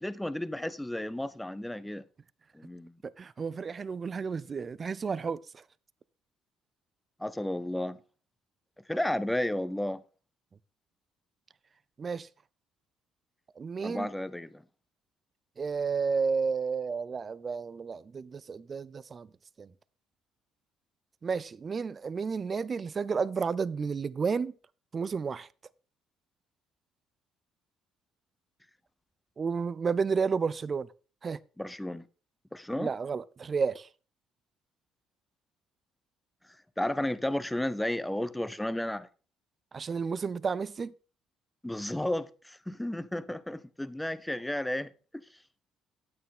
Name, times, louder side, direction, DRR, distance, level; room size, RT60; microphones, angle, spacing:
voice 1, 0.0-2.0 2.5-2.9 7.2-8.0 8.9-10.0 13.8-14.6 31.6-32.1 32.5-32.9 36.8-39.1 41.6-44.9, left 1 dB, 5° left, 0.7 m, -33 dB
voice 2, 3.2-5.6 12.0-12.3 13.6-14.1 15.6-19.3 19.6-19.7 21.2-24.5 24.9-25.5 29.4-30.9 31.2-31.4 32.8-33.9 39.7-40.9, right 5 dB, 35° right, 0.4 m, -31 dB
9.2 x 8.7 x 3.7 m
supercardioid pair, 85°, 0 cm